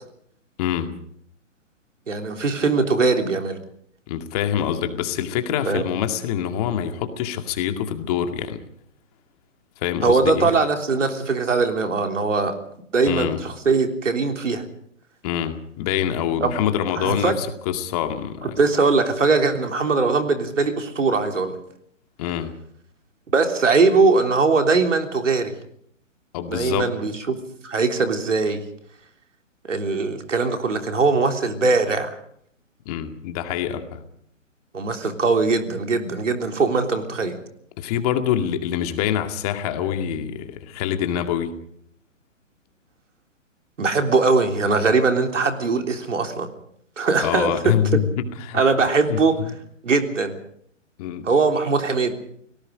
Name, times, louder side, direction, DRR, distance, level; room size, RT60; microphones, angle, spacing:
voice 1, 0.6-0.9 4.1-8.6 9.8-10.5 13.1-13.4 15.2-18.6 22.2-22.5 26.3-26.9 32.9-34.0 37.8-41.5 47.2-48.6 49.1-49.5 51.0-51.3, left 9 dB, 30° left, 7 dB, 2.2 m, -25 dB
voice 2, 2.1-3.6 5.7-5.8 10.0-12.6 12.9-14.7 16.4-16.5 17.0-17.3 18.4-21.6 23.3-25.5 26.5-27.4 27.6-28.6 29.7-32.1 34.7-37.4 43.8-46.5 47.0-47.8 48.5-49.4 49.8-50.3 51.2-52.1, right 4 dB, 70° right, 5 dB, 3.5 m, -21 dB
29.5 x 18.5 x 5.2 m, 0.68 s
figure-of-eight pair, 130°, 39 cm